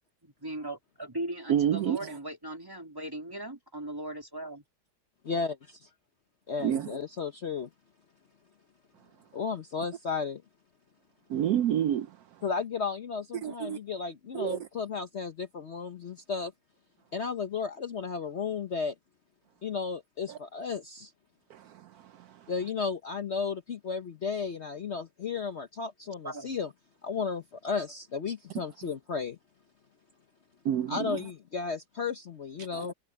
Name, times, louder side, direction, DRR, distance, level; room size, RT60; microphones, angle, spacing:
voice 1, 0.2-4.6 26.2-26.5, right 1 dB, 10° right, 3.0 m, -38 dB
voice 2, 1.5-2.2 6.6-7.0 11.3-12.2 13.4-13.8 14.3-14.7 20.3-20.4 21.5-22.5 30.6-31.2 32.7-32.9, right 10 dB, 70° right, 1.1 m, -29 dB
voice 3, 5.2-5.9 6.5-7.7 9.3-10.4 12.4-16.5 17.1-18.9 19.6-21.1 22.5-26.7 27.0-29.4 30.9-32.9, left 5 dB, 45° left, 1.1 m, -34 dB
omnidirectional pair, 1.8 m